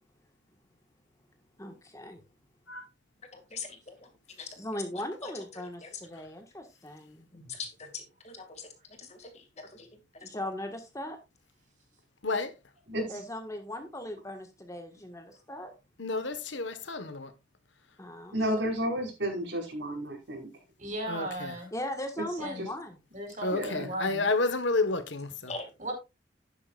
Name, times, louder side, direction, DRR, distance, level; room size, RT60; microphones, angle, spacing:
voice 1, 1.6-2.2 4.6-7.3 10.2-11.2 13.1-15.7 18.0-18.4 21.7-23.0, left 1 dB, 15° left, 1.5 m, -38 dB
voice 2, 3.3-3.9 4.4-4.5 5.8-5.9 7.3-8.7 9.0-9.9 10.2-10.3 25.5-25.7, left 4 dB, 35° left, 2.2 m, -42 dB
voice 3, 12.2-12.5 16.0-17.3 21.1-21.5 23.4-25.5, left 3 dB, 75° left, 1.4 m, -30 dB
voice 4, 12.9-13.2 20.8-21.7 22.4-22.7 23.1-24.2 25.8-25.9, right 1 dB, 40° right, 4.8 m, -37 dB
voice 5, 18.3-20.5 22.6-22.7 23.5-23.9, equal, 75° right, 5.2 m, -31 dB
12.0 x 9.8 x 2.5 m
head